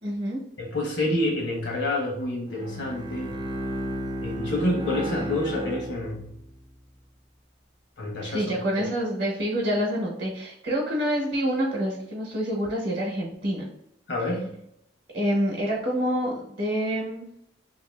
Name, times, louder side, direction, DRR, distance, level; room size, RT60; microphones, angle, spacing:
voice 1, 0.0-0.4 8.2-13.7 15.1-17.3, equal, 55° right, -3 dB, 0.9 m, -27 dB
voice 2, 0.6-3.5 4.2-6.3 8.0-8.4 8.8-8.9 14.1-14.5, left 1 dB, 70° left, 0 dB, 1.1 m, -28 dB
Bowed string instrument, 2.5-6.6, equal, 25° right, 0.4 m, -33 dB
2.9 x 2.7 x 3.3 m, 0.76 s
head